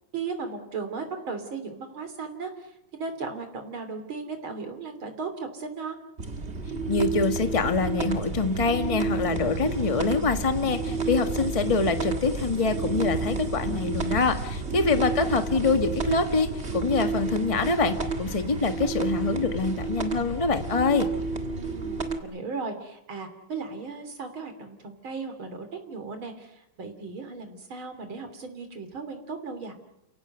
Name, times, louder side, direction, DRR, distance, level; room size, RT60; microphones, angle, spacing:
voice 1, 0.1-6.0 14.6-14.9 15.2-15.3 21.3-29.7, right 4 dB, 75° right, 7 dB, 4.0 m, -36 dB
sound 1, 6.2-22.2, right 3 dB, 35° right, 1.9 m, -30 dB
voice 2, 6.9-21.1, left 4 dB, 20° left, 6 dB, 1.4 m, -25 dB
29.5 x 17.0 x 8.0 m, 0.84 s
omnidirectional pair, 2.2 m